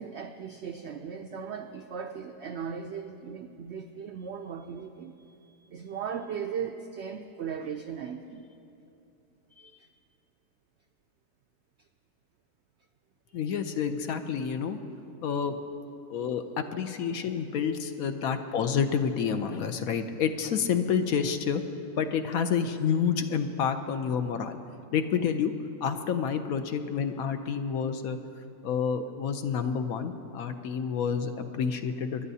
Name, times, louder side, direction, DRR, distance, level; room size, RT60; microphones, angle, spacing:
voice 1, 0.0-8.5 9.5-9.9 13.3-13.6, right 7 dB, 80° right, 6 dB, 0.6 m, -38 dB
voice 2, 13.3-14.8 15.2-15.6 16.1-21.6 22.0-24.6 24.9-25.5 25.8-28.2 28.6-32.3, left 7 dB, 70° left, 8 dB, 1.0 m, -29 dB
27.0 x 11.0 x 2.7 m, 2.8 s
omnidirectional pair, 1.7 m